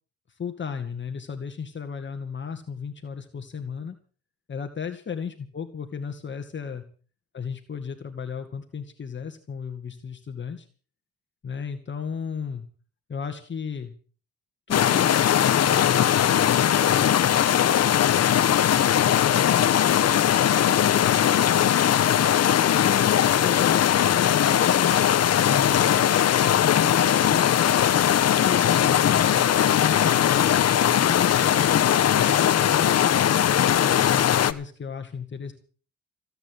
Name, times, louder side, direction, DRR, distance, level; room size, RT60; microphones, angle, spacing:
voice 1, 0.3-3.9 4.5-6.8 7.3-10.7 11.4-12.7 13.1-13.9 14.7-18.5 19.0-20.0 20.3-21.7 22.7-25.0 25.4-26.1 26.6-30.4 30.8-35.5, left 6 dB, 40° left, 5 dB, 2.2 m, -34 dB
sound 1, 14.7-34.5, left 10 dB, 55° left, 1.2 m, -20 dB
18.0 x 9.3 x 8.0 m, 0.41 s
cardioid pair, 90°, 30 cm